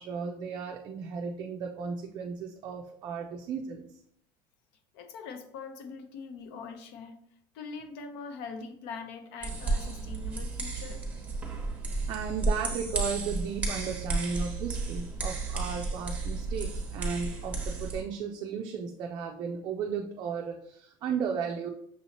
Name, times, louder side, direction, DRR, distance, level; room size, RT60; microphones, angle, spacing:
voice 1, 0.0-4.0 12.1-21.7, right 6 dB, 40° right, 2 dB, 0.4 m, -35 dB
voice 2, 4.9-7.2 7.5-11.0, left 5 dB, 80° left, 8 dB, 0.6 m, -42 dB
sound 1, 9.4-18.0, right 3 dB, 10° right, 0.9 m, -33 dB
6.1 x 2.8 x 2.9 m, 0.69 s
cardioid pair, 160°, 11 cm